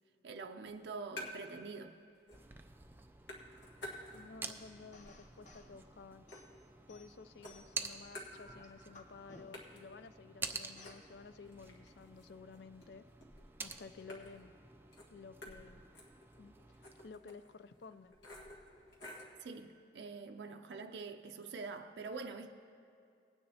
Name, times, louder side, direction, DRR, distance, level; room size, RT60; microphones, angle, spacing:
voice 1, 0.2-2.0 19.4-22.5, right 4 dB, 75° right, 0.5 m, -45 dB
sound 1, 0.6-1.7 1.9-2.6 2.9-4.5 4.9-7.1 7.4-8.9 9.1-9.2 9.5-19.4, left 1 dB, 90° left, 1.6 m, -53 dB
sound 2, 2.3-17.1, right 4 dB, 10° right, 0.3 m, -50 dB
voice 2, 4.1-6.3 6.9-13.0 13.6-14.5 15.1-15.8 16.4-18.1, left 4 dB, 70° left, 0.4 m, -53 dB
sound 3, 4.9-5.7 6.3-7.9 8.3-9.8 10.8-11.1, left 2 dB, 45° left, 0.8 m, -59 dB
19.0 x 9.5 x 2.8 m
head